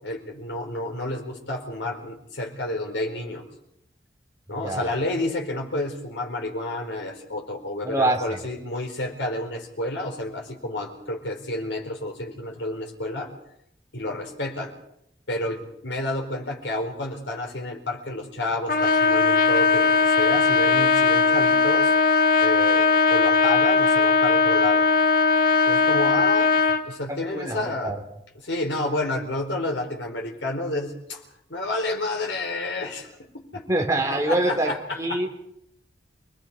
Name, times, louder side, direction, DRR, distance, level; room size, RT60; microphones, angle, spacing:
voice 1, 0.0-3.4 4.5-13.3 13.9-14.7 15.3-24.8 25.6-26.5 26.8-27.9 28.4-31.2 31.5-33.6 34.1-35.2, left 1 dB, 75° left, 2 dB, 4.4 m, -30 dB
voice 2, 4.5-4.9 7.8-8.4 27.1-28.0 33.7-35.3, right 2 dB, 15° right, 3 dB, 2.6 m, -25 dB
Trumpet, 18.7-26.9, left 5 dB, 50° left, 1.2 m, -19 dB
29.5 x 20.5 x 5.0 m, 0.78 s
head